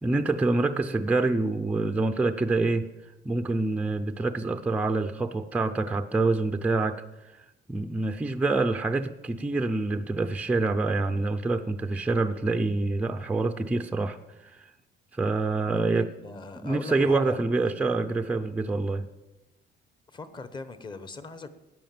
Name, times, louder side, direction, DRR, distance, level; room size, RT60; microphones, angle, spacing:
voice 1, 0.0-2.9 3.2-7.0 7.7-14.2 14.4-14.7 15.1-16.1 16.6-19.0, right 3 dB, 5° right, 6 dB, 0.5 m, -26 dB
voice 2, 15.7-17.6 20.1-21.5, left 3 dB, 25° left, 12 dB, 1.0 m, -41 dB
15.5 x 9.6 x 7.7 m, 1.0 s
cardioid pair, 170°, 20 cm